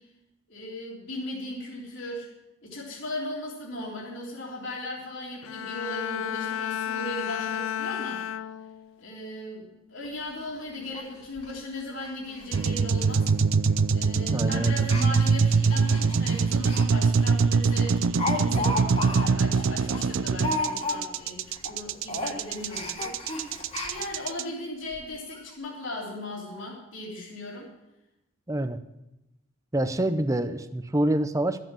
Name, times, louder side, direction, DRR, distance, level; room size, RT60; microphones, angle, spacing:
voice 1, 0.5-2.3 2.6-8.2 9.0-13.3 13.9-23.1 23.8-27.7, left 1 dB, 60° left, -4 dB, 3.4 m, -37 dB
Bowed string instrument, 5.4-9.0 9.5-9.8, left 9 dB, 80° left, 0.4 m, -32 dB
Speech, 10.0-10.1 10.5-10.6 10.9-11.0 11.4-11.5 12.0-12.1 12.4-12.7 12.9-13.0 13.8-14.0 14.8-16.9 17.2-17.3 17.7-21.3 21.5-21.8 22.0-24.3 24.9-25.0 25.3-25.4, left 2 dB, 30° left, 2.7 m, -33 dB
sound 1, 12.5-24.4, right 5 dB, 75° right, 0.5 m, -23 dB
voice 2, 14.3-14.9 28.5-28.8 29.7-31.6, right 1 dB, 15° right, 10 dB, 0.6 m, -26 dB
14.0 x 7.6 x 7.4 m, 0.93 s
head